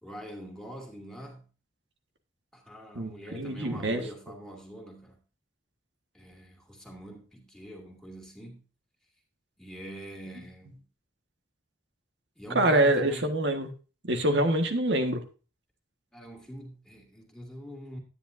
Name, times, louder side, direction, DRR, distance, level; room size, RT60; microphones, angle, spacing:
voice 1, 0.0-1.5 2.5-5.2 6.1-8.6 9.6-10.8 12.4-13.3 16.1-18.0, equal, 5° left, 2.6 m, -44 dB
voice 2, 2.9-4.0 12.5-13.7 14.0-15.2, right 1 dB, 75° right, 1.5 m, -25 dB
10.0 x 10.0 x 2.6 m
head